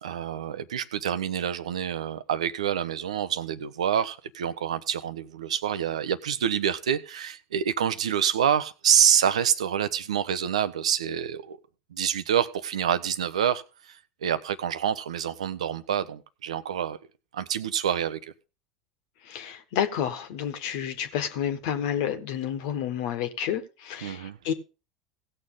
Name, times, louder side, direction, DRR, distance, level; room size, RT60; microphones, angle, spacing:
voice 1, 0.0-11.6 11.9-17.0 17.3-18.2 24.0-24.4, right 9 dB, 75° right, 0.8 m, -27 dB
voice 2, 19.2-24.5, left 9 dB, 60° left, 1.5 m, -30 dB
17.5 x 6.7 x 3.9 m
hypercardioid pair, 80°, 3 cm